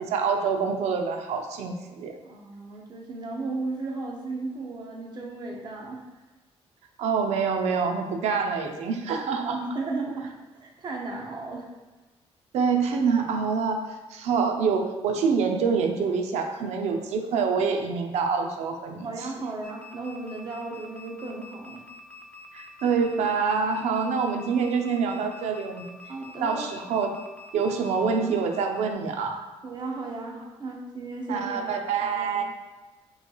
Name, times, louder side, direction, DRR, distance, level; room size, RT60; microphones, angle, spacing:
voice 1, 0.0-2.2 7.0-9.6 12.5-13.8 14.1-19.3 22.5-25.9 26.4-27.1 27.5-29.4 31.3-32.4, right 5 dB, 80° right, 4 dB, 0.5 m, -26 dB
voice 2, 2.2-6.0 9.4-11.7 19.0-21.8 26.1-26.7 29.6-31.7 32.0-32.4, right 3 dB, 40° right, -1 dB, 0.8 m, -35 dB
sound 1, 19.6-28.9, left 2 dB, 10° left, 0.5 m, -47 dB
5.2 x 3.1 x 2.3 m, 1.2 s
cardioid pair, 120°, 11 cm